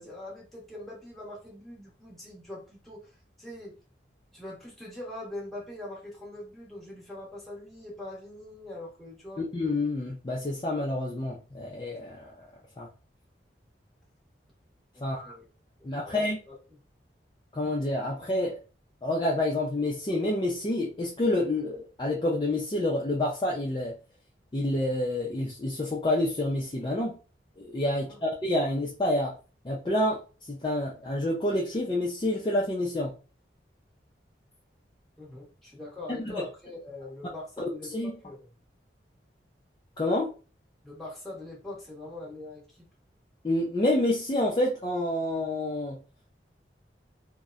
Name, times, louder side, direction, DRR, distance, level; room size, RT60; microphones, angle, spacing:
voice 1, 0.0-3.1 3.4-3.8 4.3-9.4 14.9-15.5 15.8-16.5 27.9-28.2 35.2-38.5 40.8-42.8, left 1 dB, ahead, 0.9 m, -42 dB
voice 2, 9.4-12.5 12.8-12.9 15.0-15.3 15.8-16.4 17.5-18.6 19.0-24.0 24.5-27.2 27.6-29.3 29.6-30.2 30.5-33.1 36.1-36.4 37.9-38.1 40.0-40.3 43.4-46.0, left 1 dB, 25° left, 0.4 m, -28 dB
2.8 x 2.0 x 2.3 m
head